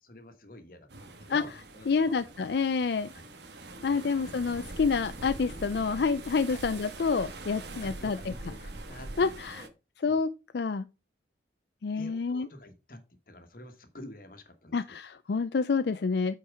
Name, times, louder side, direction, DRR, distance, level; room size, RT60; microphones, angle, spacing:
voice 1, 0.0-2.1 3.1-3.3 3.9-4.0 6.5-6.6 7.8-9.7 10.0-10.2 11.9-15.0, left 1 dB, 50° left, 1.4 m, -49 dB
sound 1, 0.9-9.7, right 2 dB, 70° right, 1.3 m, -43 dB
voice 2, 1.9-3.1 3.8-8.2 9.2-9.7 10.0-10.8 11.8-12.5 14.7-16.4, left 5 dB, 65° left, 0.4 m, -28 dB
8.7 x 4.6 x 4.8 m
head